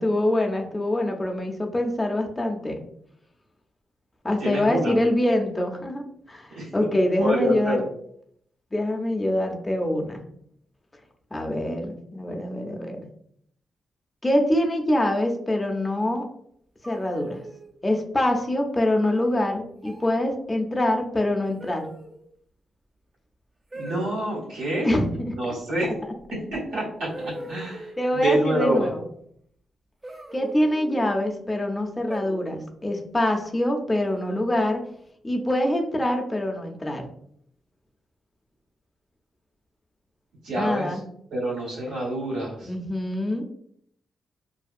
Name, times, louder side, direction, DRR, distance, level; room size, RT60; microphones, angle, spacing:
voice 1, 0.0-2.8 4.2-7.8 8.7-10.2 11.3-13.1 14.2-16.3 16.9-17.4 17.8-21.9 24.8-25.4 25.8-25.9 28.0-29.0 30.3-34.8 35.2-37.1 40.5-41.0 42.6-43.4, left 1 dB, 20° left, 2 dB, 0.6 m, -25 dB
voice 2, 4.4-4.9 6.5-6.7 7.2-7.8 23.7-25.0 25.4-25.9 26.5-28.9 40.4-40.9 41.3-42.7, right 1 dB, 90° right, -5 dB, 1.4 m, -27 dB
sound 1, 16.8-17.7 19.0-19.3 19.8-20.2 21.6-22.2 23.7-24.3 26.2-26.3 27.1-28.1 30.0-31.1 32.1-32.7 33.9-34.5, right 1 dB, 30° right, 0.4 m, -40 dB
2.6 x 2.2 x 2.4 m, 0.67 s
cardioid pair, 65°, 0 cm